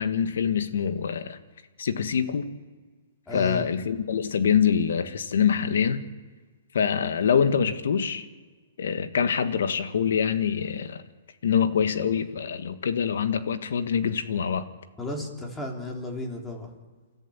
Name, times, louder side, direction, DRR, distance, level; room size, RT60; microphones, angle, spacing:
voice 1, 0.0-1.4 1.8-2.5 3.3-6.0 6.7-8.3 8.8-11.0 11.4-14.6, left 7 dB, 75° left, 10 dB, 1.6 m, -25 dB
voice 2, 3.3-3.6 15.0-16.7, left 2 dB, 10° left, 1 dB, 3.6 m, -33 dB
29.0 x 13.5 x 7.2 m, 1.4 s
hypercardioid pair, 145°, 0 cm